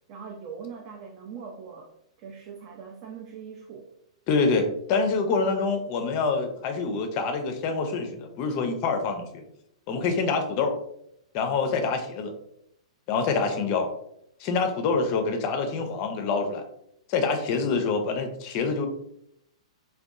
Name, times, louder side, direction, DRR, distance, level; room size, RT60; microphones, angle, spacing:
voice 1, 0.1-3.9, right 6 dB, 40° right, 1 dB, 0.4 m, -41 dB
voice 2, 4.3-9.4 9.9-10.7 11.3-12.3 13.1-13.9 14.4-16.7 17.1-18.9, left 4 dB, 40° left, 6 dB, 0.4 m, -26 dB
2.7 x 2.2 x 2.3 m, 0.76 s
hypercardioid pair, 115°, 3 cm